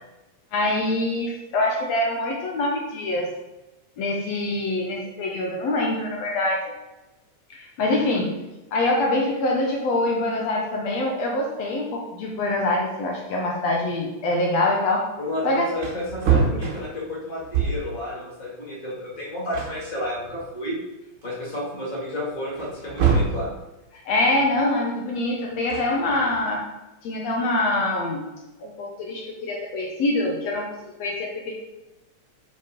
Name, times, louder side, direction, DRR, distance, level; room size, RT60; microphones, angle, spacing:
voice 1, 0.5-3.3 4.0-6.7 7.5-8.4 8.7-15.1 15.4-15.8 23.9-26.7 27.0-28.3 28.6-31.5, left 2 dB, 70° left, -1 dB, 2.0 m, -24 dB
voice 2, 15.2-20.8 21.2-23.5, left 1 dB, 15° left, -5 dB, 1.7 m, -31 dB
Wood, 15.3-15.4 15.7-18.0 19.1-19.2 19.5-20.7 21.2-21.3 22.6-23.5 25.5-26.4, right 6 dB, 50° right, 1.7 m, -25 dB
5.8 x 5.6 x 5.1 m, 1.0 s
omnidirectional pair, 3.4 m